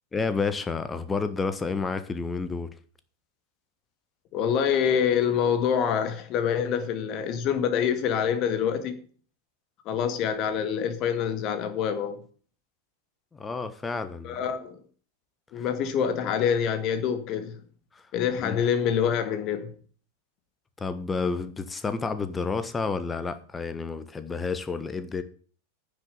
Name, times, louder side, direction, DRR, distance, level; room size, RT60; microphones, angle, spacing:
voice 1, 0.1-2.7 13.3-14.4 18.4-18.6 20.8-25.2, left 4 dB, 15° left, 1.3 m, -30 dB
voice 2, 4.3-9.0 9.9-12.2 14.2-14.8 15.5-17.6 18.1-19.7, left 8 dB, 40° left, 1.9 m, -26 dB
9.8 x 7.1 x 8.2 m
figure-of-eight pair, 90°, 0 cm